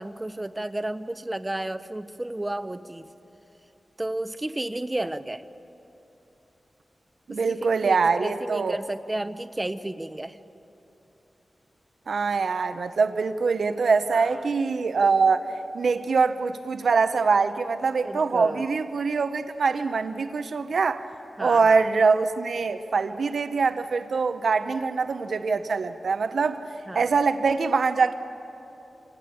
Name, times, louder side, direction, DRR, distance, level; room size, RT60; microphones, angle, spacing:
voice 1, 0.0-3.1 4.0-5.4 7.3-10.4 14.1-14.4 18.0-18.6 21.4-21.9 26.9-27.1, right 1 dB, 20° right, 11 dB, 0.8 m, -32 dB
voice 2, 7.3-8.8 12.1-15.4 15.7-21.0 21.4-26.6 26.9-28.1, right 4 dB, 80° right, 10 dB, 0.8 m, -23 dB
26.5 x 18.0 x 8.4 m, 2.9 s
wide cardioid pair, 85°, 0 cm